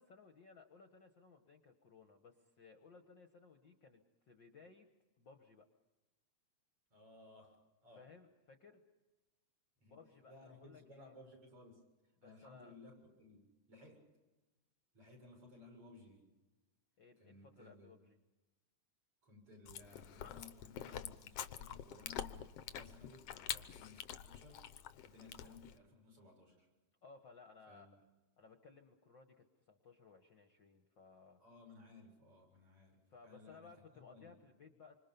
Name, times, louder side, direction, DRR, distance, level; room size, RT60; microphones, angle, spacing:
voice 1, 0.0-4.9 5.2-5.7 7.9-8.8 9.8-11.1 12.2-12.8 17.0-18.2 23.4-23.7 27.0-27.9 28.4-31.4 33.1-35.0, left 4 dB, 50° left, 5 dB, 1.7 m, -60 dB
voice 2, 6.9-8.1 9.8-10.0 10.3-11.8 12.2-14.1 14.9-16.3 17.2-17.9 19.2-24.7 25.0-26.7 27.7-27.9 31.4-34.3, left 2 dB, 50° right, 1 dB, 8.3 m, -59 dB
Chewing mastication, 19.7-25.8, left 10 dB, 65° left, 1.7 m, -46 dB
27.5 x 25.5 x 5.4 m, 1.1 s
omnidirectional pair, 3.3 m